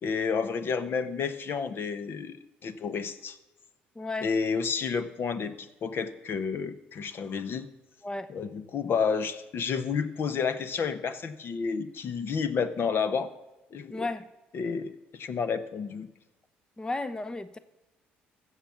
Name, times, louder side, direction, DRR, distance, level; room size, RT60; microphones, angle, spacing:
voice 1, 0.0-3.4 4.2-7.7 8.3-13.3 13.7-14.1 14.5-16.1, left 5 dB, 55° left, 11 dB, 1.0 m, -30 dB
voice 2, 4.0-4.3 8.0-8.3 13.9-14.3 16.8-17.6, left 2 dB, 15° left, 13 dB, 0.7 m, -34 dB
14.5 x 7.5 x 5.8 m, 1.0 s
hypercardioid pair, 60°, 5 cm